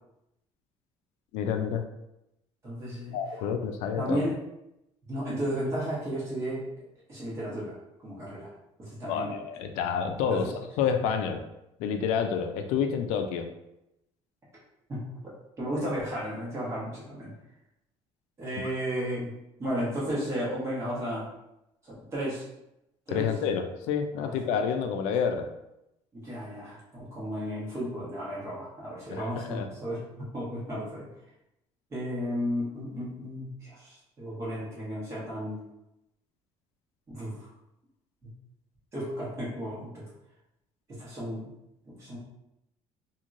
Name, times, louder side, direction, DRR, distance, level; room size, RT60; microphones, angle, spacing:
voice 1, 1.3-1.8 3.1-4.2 9.1-10.5 10.8-11.4 11.8-13.5 23.1-25.5 29.1-29.7, left 7 dB, 85° left, 6 dB, 0.4 m, -28 dB
voice 2, 2.6-3.5 3.9-4.4 5.1-8.5 8.8-9.3 10.3-10.5 14.9-17.3 18.4-19.3 19.6-21.3 21.8-22.5 23.1-23.3 24.2-24.5 26.1-31.1 31.9-35.6 37.1-37.5 38.9-40.0 40.9-41.5 41.8-42.2, equal, 25° right, -7 dB, 1.3 m, -34 dB
3.0 x 2.7 x 2.5 m, 0.86 s
cardioid pair, 160°, 12 cm